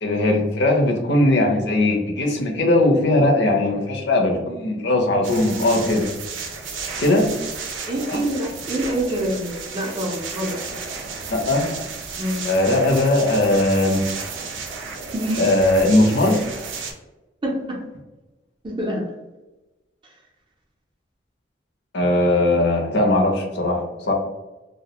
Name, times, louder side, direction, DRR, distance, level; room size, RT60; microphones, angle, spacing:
voice 1, 0.0-6.1 7.0-7.3 8.1-8.2 11.3-11.7 12.4-14.0 15.4-16.4 21.9-24.1, left 1 dB, 65° left, 1 dB, 0.6 m, -19 dB
sound 1, 5.2-16.9, right 5 dB, 90° right, 0.5 m, -33 dB
voice 2, 7.9-10.6 12.2-12.4 15.1-15.5 17.4-17.8 18.6-19.1, right 1 dB, 25° right, -1 dB, 0.4 m, -26 dB
2.3 x 2.1 x 2.8 m, 1.1 s
head